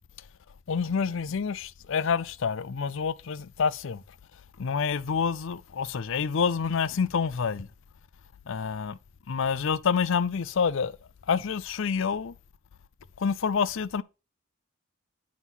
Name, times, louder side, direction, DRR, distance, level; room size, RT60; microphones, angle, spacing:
voice 1, 0.7-4.0 4.6-7.7 8.5-9.0 9.3-11.0 11.3-12.4 13.2-14.0, left 6 dB, 65° left, 0.5 m, -27 dB
9.5 x 3.8 x 6.1 m
head